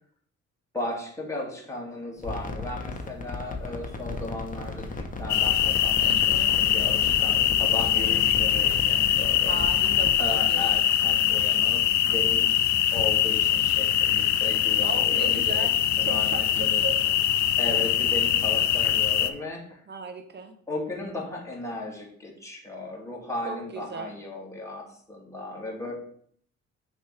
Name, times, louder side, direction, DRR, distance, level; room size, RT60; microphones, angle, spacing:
voice 1, 0.7-6.1 6.6-9.6 10.2-15.7 16.0-16.8 17.6-19.8 20.7-25.9, left 2 dB, 10° left, -2 dB, 2.2 m, -36 dB
sound 1, 2.2-10.8, left 3 dB, 25° left, 1.1 m, -36 dB
sound 2, 5.3-19.3, left 11 dB, 65° left, 0.6 m, -23 dB
voice 2, 6.0-6.6 9.5-10.2 10.5-10.8 14.8-15.7 16.0-17.2 19.9-20.5 23.4-24.2, right 4 dB, 35° right, 6 dB, 1.2 m, -37 dB
6.4 x 3.3 x 5.9 m, 0.62 s
cardioid pair, 90°, 30 cm